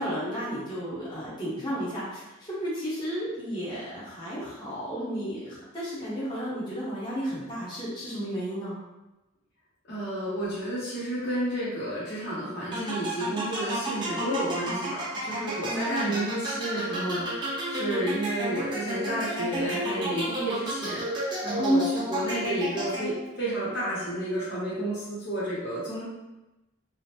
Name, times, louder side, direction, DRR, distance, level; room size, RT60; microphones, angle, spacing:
voice 1, 0.0-8.8 15.6-16.2 21.6-21.9, equal, 20° left, -10 dB, 1.0 m, -32 dB
voice 2, 9.9-26.0, right 1 dB, 55° left, -8 dB, 0.9 m, -31 dB
sound 1, 12.7-23.4, right 1 dB, 25° right, 0.6 m, -32 dB
3.7 x 2.1 x 2.8 m, 1.0 s
head